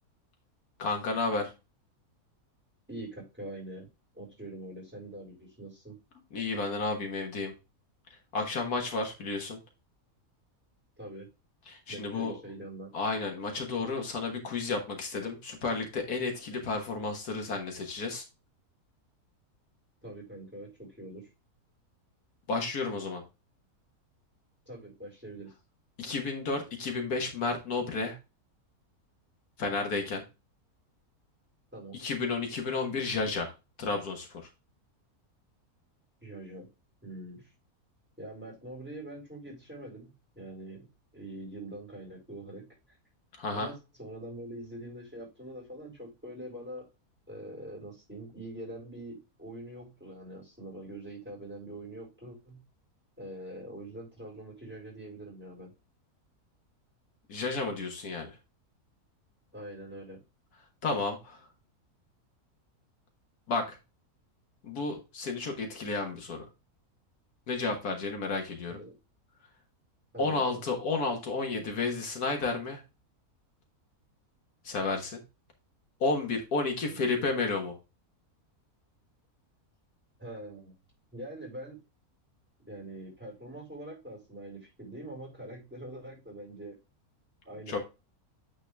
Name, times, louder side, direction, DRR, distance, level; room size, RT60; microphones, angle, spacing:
voice 1, 0.8-1.5 6.3-7.5 8.3-9.6 11.7-12.3 12.9-18.2 22.5-23.2 26.0-28.2 29.6-30.2 31.9-33.5 33.8-34.3 43.4-43.7 57.3-58.4 60.8-61.4 63.5-63.8 64.6-66.5 67.5-68.8 70.2-72.8 74.6-75.2 76.0-77.8 87.7-87.8, left 3 dB, 80° left, 3 dB, 2.0 m, -32 dB
voice 2, 2.9-3.9 4.1-6.0 11.0-11.3 11.9-12.9 20.0-21.3 24.7-25.5 31.7-32.0 36.2-36.7 37.0-37.5 38.2-40.9 41.1-42.7 43.5-46.9 47.3-52.6 53.2-55.7 59.5-60.2 68.7-68.9 70.1-70.6 76.9-77.3 80.2-80.7 81.1-81.8 82.7-86.8 87.4-87.7, right 1 dB, 5° right, -2 dB, 4.6 m, -44 dB
8.9 x 4.2 x 3.4 m, 0.27 s
omnidirectional pair, 1.6 m